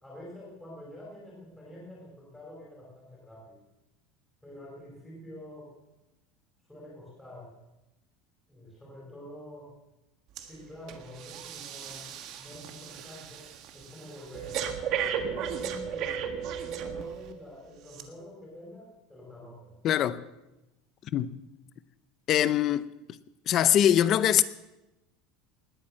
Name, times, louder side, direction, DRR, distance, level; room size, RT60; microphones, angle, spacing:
voice 1, 0.0-3.6 4.4-5.7 6.7-7.6 8.5-9.8 10.4-13.5 13.7-16.2 16.6-19.7, left 1 dB, 5° left, 4.8 m, -47 dB
Breathing, 10.4-10.5 10.9-17.3 17.9-18.0, right 8 dB, 40° right, 1.5 m, -35 dB
voice 2, 19.8-20.2 21.1-21.3 22.3-22.9 23.5-24.4, left 11 dB, 30° left, 0.6 m, -22 dB
19.5 x 9.5 x 7.5 m
cardioid pair, 175°, 0 cm